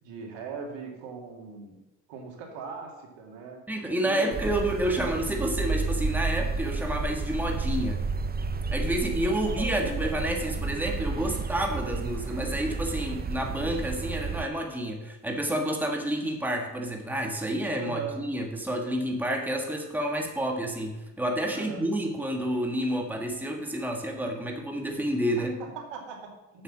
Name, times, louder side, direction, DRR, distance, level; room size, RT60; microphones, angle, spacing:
voice 1, 0.0-1.8 2.1-3.6 4.0-4.3 9.3-10.2 17.8-18.2 21.5-21.9 25.4-26.6, right 5 dB, 70° right, 1 dB, 2.4 m, -39 dB
voice 2, 3.7-8.0 8.7-25.6, right 1 dB, 5° right, 1 dB, 1.8 m, -29 dB
sound 1, 4.3-14.5, right 4 dB, 20° right, 0.6 m, -31 dB
7.7 x 5.7 x 7.4 m, 0.98 s
supercardioid pair, 70°, 44 cm